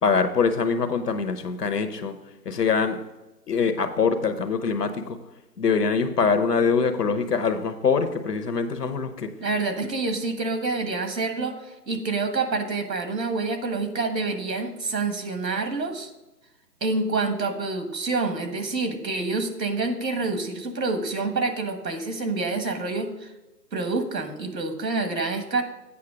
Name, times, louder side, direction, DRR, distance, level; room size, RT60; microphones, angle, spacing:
voice 1, 0.0-2.2 2.4-3.0 3.5-5.2 5.6-9.3, left 5 dB, 70° left, 9 dB, 1.1 m, -24 dB
voice 2, 9.4-16.1 16.8-23.3 23.7-25.6, right 3 dB, 80° right, 6 dB, 1.7 m, -27 dB
8.5 x 5.7 x 4.9 m, 1.0 s
hypercardioid pair, 170°, 50 cm